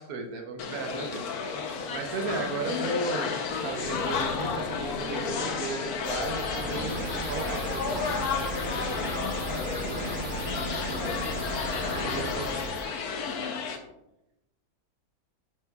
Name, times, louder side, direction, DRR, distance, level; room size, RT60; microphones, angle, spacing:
voice 1, 0.0-8.3 11.9-12.8, right 4 dB, 80° right, 3 dB, 1.3 m, -36 dB
sound 1, 0.6-13.8, left 5 dB, 85° left, 1.3 m, -32 dB
sound 2, 3.5-6.7 7.0-7.1 8.4-10.4 10.6-10.7 11.8-12.3, left 6 dB, 70° left, 0.6 m, -42 dB
sound 3, 6.0-12.8, right 1 dB, 40° right, 2.7 m, -35 dB
voice 2, 9.2-11.4, left 1 dB, 50° left, -4 dB, 1.5 m, -41 dB
11.0 x 6.4 x 2.3 m, 0.87 s
omnidirectional pair, 1.6 m